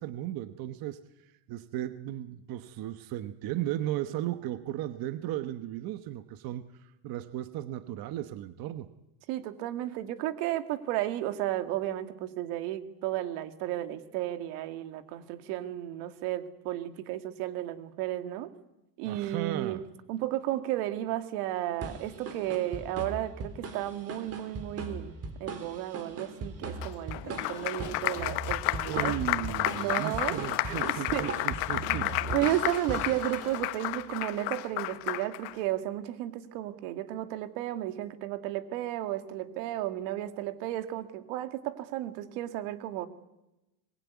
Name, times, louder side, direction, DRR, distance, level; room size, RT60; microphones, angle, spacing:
voice 1, 0.0-8.9 19.1-19.8 28.8-32.3, right 13 dB, 45° right, 11 dB, 1.1 m, -36 dB
voice 2, 9.3-18.5 19.0-19.8 20.1-25.1 25.4-29.2 29.8-30.4 30.7-31.3 31.8-43.1, right 14 dB, 80° right, 9 dB, 2.2 m, -33 dB
sound 1, 21.8-33.8, right 3 dB, 30° right, 3.6 m, -39 dB
Applause, 26.8-35.5, left 20 dB, 75° left, 1.2 m, -32 dB
24.5 x 21.5 x 9.4 m, 0.97 s
cardioid pair, 145°, 47 cm